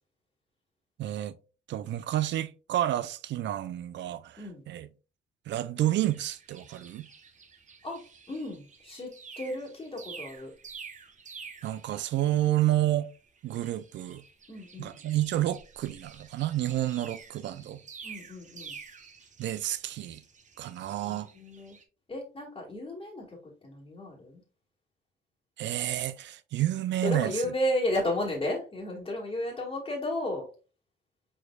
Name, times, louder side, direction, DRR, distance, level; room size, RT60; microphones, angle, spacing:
voice 1, 1.0-1.4 1.7-4.9 5.5-7.1 11.6-13.1 13.4-14.2 14.8-17.8 19.4-20.2 20.6-21.3 25.6-27.3, right 13 dB, 65° right, 0.4 m, -30 dB
sound 1, 6.0-12.7 13.0-21.8, right 5 dB, 40° right, 0.8 m, -49 dB
voice 2, 8.3-9.1 9.4-10.5 14.5-15.0 17.4-17.7 18.0-18.8 21.0-21.8 22.1-23.4 23.6-24.4 27.0-30.4, left 1 dB, 25° left, 1.5 m, -33 dB
4.6 x 4.3 x 2.2 m
cardioid pair, 90°, 20 cm